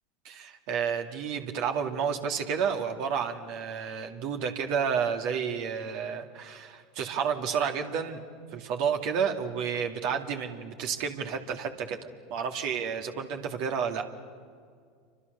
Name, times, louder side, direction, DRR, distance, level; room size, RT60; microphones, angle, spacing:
voice 1, 0.2-8.2 8.5-12.0 12.3-14.1, right 7 dB, 60° right, 4 dB, 2.2 m, -30 dB
28.0 x 25.0 x 6.8 m, 2.1 s
hypercardioid pair, 85°, 0 cm